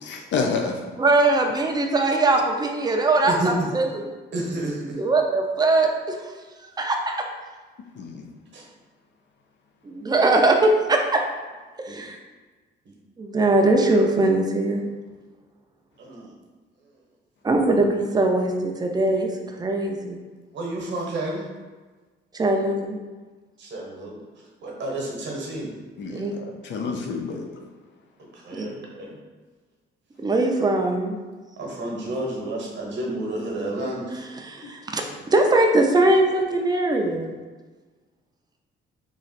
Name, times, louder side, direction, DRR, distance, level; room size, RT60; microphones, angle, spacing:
voice 1, 0.0-0.8 8.0-8.3 26.0-27.5 34.6-34.7, left 4 dB, 65° left, 3 dB, 0.6 m, -29 dB
voice 2, 1.0-4.1 5.0-7.1 9.8-11.2 11.8-12.2 13.2-14.8 17.4-20.2 22.3-23.0 26.1-26.3 28.5-28.7 30.2-31.2 34.1-35.0 35.3-37.3, right 2 dB, 20° right, 2 dB, 0.5 m, -21 dB
voice 3, 3.3-3.7 4.3-5.0 8.5-8.6 11.9-12.0 16.0-16.3 20.5-21.4 23.6-24.2 24.6-25.7 28.4-29.2 31.6-34.1, right 1 dB, 65° right, -1 dB, 1.0 m, -30 dB
3.1 x 2.4 x 4.1 m, 1.3 s
cardioid pair, 90°, 20 cm